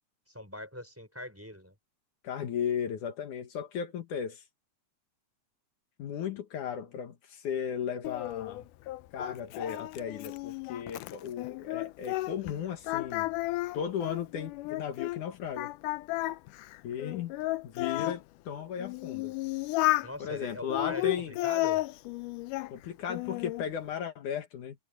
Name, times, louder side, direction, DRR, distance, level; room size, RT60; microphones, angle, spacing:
voice 1, 0.3-1.7 20.0-21.9, left 1 dB, 5° right, 5.2 m, -42 dB
voice 2, 2.2-4.4 6.0-8.7 9.1-13.3 13.7-15.7 16.8-17.3 17.6-19.3 20.2-21.4 22.7-24.8, left 8 dB, 75° left, 3.0 m, -36 dB
Singing, 8.0-12.6 12.8-15.2 15.6-18.2 18.8-20.1 20.7-22.7 23.1-23.7, left 19 dB, 90° left, 2.2 m, -33 dB
omnidirectional pair, 3.6 m